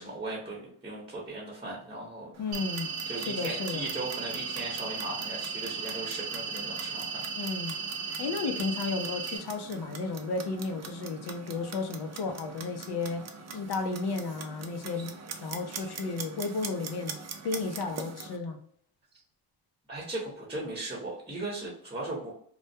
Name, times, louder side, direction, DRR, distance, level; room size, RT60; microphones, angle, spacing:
voice 1, 0.0-2.3 3.1-7.2 19.9-22.3, right 2 dB, 10° right, -4 dB, 0.9 m, -38 dB
Clock, 2.3-18.4, right 5 dB, 35° right, 0.4 m, -43 dB
voice 2, 2.4-3.9 7.3-7.8 8.2-13.3 13.5-15.2 15.4-17.2 17.4-18.6, left 3 dB, 55° left, 6 dB, 0.6 m, -33 dB
sound 1, 2.5-9.4, right 5 dB, 70° right, 0.8 m, -36 dB
2.2 x 2.2 x 2.6 m, 0.63 s
cardioid pair, 75°, 48 cm